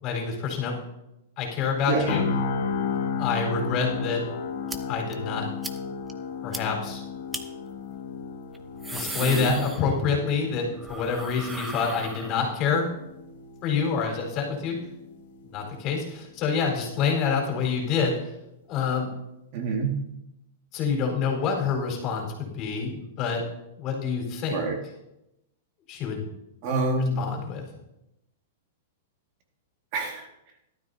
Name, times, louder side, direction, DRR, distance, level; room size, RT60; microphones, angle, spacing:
voice 1, 0.0-0.8 1.4-2.2 3.2-4.2 4.9-5.5 6.4-7.0 8.9-12.9 13.6-14.8 15.5-18.2 18.7-19.1 20.7-23.4 23.8-24.6 25.9-26.3 27.2-27.6, left 6 dB, 35° left, 0 dB, 4.5 m, -27 dB
voice 2, 1.9-2.2 9.2-9.5 19.5-20.0 24.5-24.8 26.6-27.2 29.9-30.3, right 3 dB, 45° right, 2 dB, 2.1 m, -26 dB
sound 1, 2.1-16.1 16.4-16.6, left 4 dB, 65° left, 1.6 m, -34 dB
sound 2, 4.7-4.8 5.1-5.2 5.6-5.8 6.1-6.2 6.5-6.6 7.3-7.4 8.5-10.2 10.5-12.7, right 2 dB, 5° right, 0.9 m, -37 dB
17.5 x 12.5 x 2.8 m, 0.87 s
hypercardioid pair, 150°, 0 cm